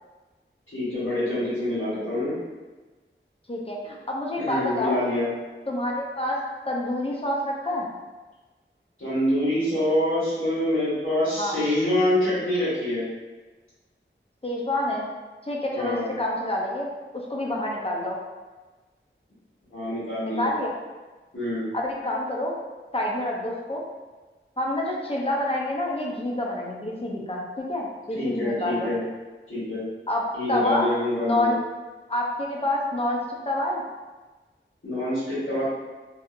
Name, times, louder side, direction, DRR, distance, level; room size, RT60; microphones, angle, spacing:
voice 1, 0.7-2.3 4.3-5.3 9.0-13.0 15.7-16.1 19.7-20.4 21.3-21.7 28.1-29.0 29.5-29.8 30.3-31.5 34.8-35.6, left 1 dB, 85° left, -13 dB, 1.3 m, -26 dB
voice 2, 3.5-5.0 5.7-7.9 11.4-11.6 14.4-15.1 15.4-16.9 17.1-18.2 20.2-20.7 21.7-22.5 22.9-23.8 24.6-27.4 27.7-28.9 30.1-30.9 31.2-31.5 32.1-33.8, left 1 dB, 30° left, -2 dB, 0.5 m, -27 dB
2.7 x 2.4 x 2.5 m, 1.2 s
wide cardioid pair, 45°, 21 cm